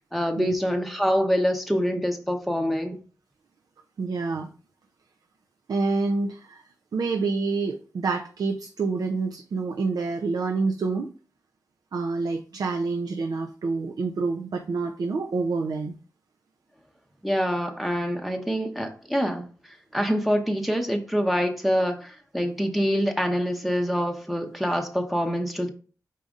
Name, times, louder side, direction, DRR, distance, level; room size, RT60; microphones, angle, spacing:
voice 1, 0.0-3.0 17.2-19.4 19.9-25.7, equal, ahead, 3 dB, 0.7 m, -25 dB
voice 2, 4.0-4.5 5.7-6.6 6.9-11.1 11.9-15.9, right 4 dB, 85° right, 4 dB, 0.4 m, -27 dB
4.9 x 4.1 x 2.4 m, 0.39 s
wide cardioid pair, 65°, 6 cm